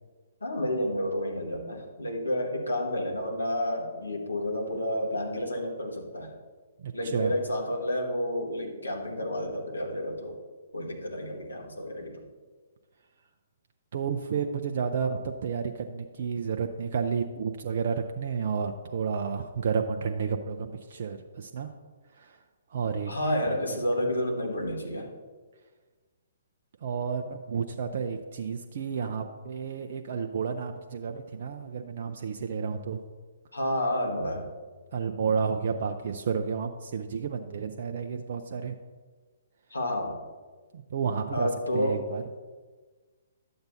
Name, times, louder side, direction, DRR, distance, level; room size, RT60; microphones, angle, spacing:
voice 1, 0.4-6.3 6.9-10.4 10.7-12.2 23.1-25.1 33.5-34.5 39.7-40.2 41.3-42.1, left 1 dB, 80° left, 0 dB, 1.8 m, -30 dB
voice 2, 6.8-7.3 13.9-21.7 22.2-22.4 22.7-23.1 26.8-33.0 34.9-38.8 40.7-42.2, right 6 dB, 50° right, 5 dB, 0.5 m, -31 dB
11.5 x 7.7 x 2.8 m, 1.4 s
figure-of-eight pair, 125°, 0 cm